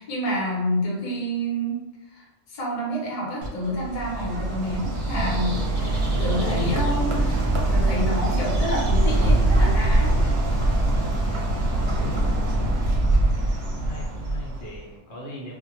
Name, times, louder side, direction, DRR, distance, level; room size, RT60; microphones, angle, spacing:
voice 1, 0.0-1.8 2.1-10.1, equal, 40° left, -4 dB, 0.6 m, -28 dB
Bird, 3.4-14.8, right 1 dB, 60° right, 0.8 m, -23 dB
voice 2, 10.9-11.3 13.7-15.5, equal, 65° left, -3 dB, 0.8 m, -39 dB
2.1 x 2.1 x 2.9 m, 1.0 s
omnidirectional pair, 1.3 m